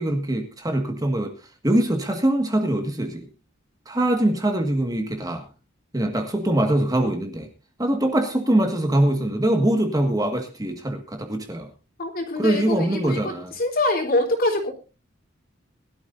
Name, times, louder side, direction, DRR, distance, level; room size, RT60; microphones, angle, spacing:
voice 1, 0.0-1.3 1.6-3.3 3.9-5.5 5.9-7.5 7.8-11.7 12.4-13.6, right 1 dB, 20° right, 1.8 m, -23 dB
voice 2, 12.0-14.7, left 2 dB, 50° left, 3.5 m, -24 dB
22.0 x 12.5 x 2.6 m
head